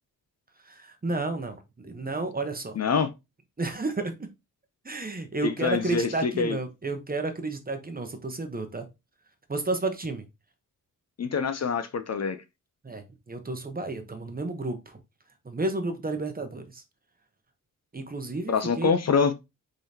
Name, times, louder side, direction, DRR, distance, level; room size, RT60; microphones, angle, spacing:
voice 1, 0.7-2.8 3.6-4.3 4.8-8.9 9.5-10.3 12.8-15.0 15.4-16.8 17.9-18.9, right 2 dB, 25° right, 0.9 m, -31 dB
voice 2, 2.8-3.1 5.4-6.6 11.2-12.4 18.5-19.3, left 5 dB, 50° left, 0.6 m, -25 dB
5.0 x 3.8 x 2.8 m
wide cardioid pair, 105°, 34 cm